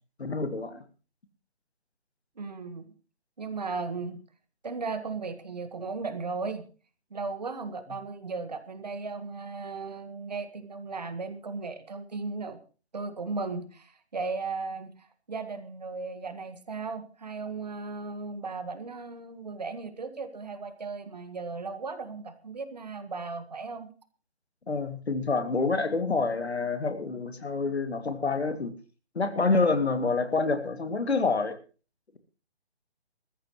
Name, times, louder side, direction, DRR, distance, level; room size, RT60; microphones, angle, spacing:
voice 1, 0.2-0.8 24.7-28.7 29.1-31.6, left 3 dB, 70° left, 9 dB, 2.4 m, -27 dB
voice 2, 2.4-2.9 3.4-4.2 4.6-6.7 7.1-12.6 12.9-23.9, right 4 dB, 40° right, 10 dB, 1.5 m, -36 dB
21.5 x 14.0 x 3.1 m, 0.35 s
hypercardioid pair, 175°, 33 cm